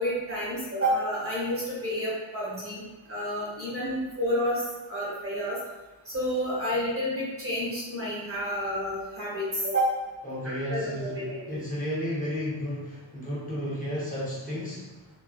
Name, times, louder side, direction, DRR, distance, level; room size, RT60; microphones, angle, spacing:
voice 1, 0.0-2.8 3.1-4.6 4.9-5.6 6.1-9.9 10.4-11.6, equal, 30° right, -7 dB, 1.3 m, -30 dB
voice 2, 10.2-14.9, equal, 15° left, -8 dB, 1.2 m, -33 dB
3.9 x 3.1 x 3.1 m, 1.2 s
wide cardioid pair, 165°, 46 cm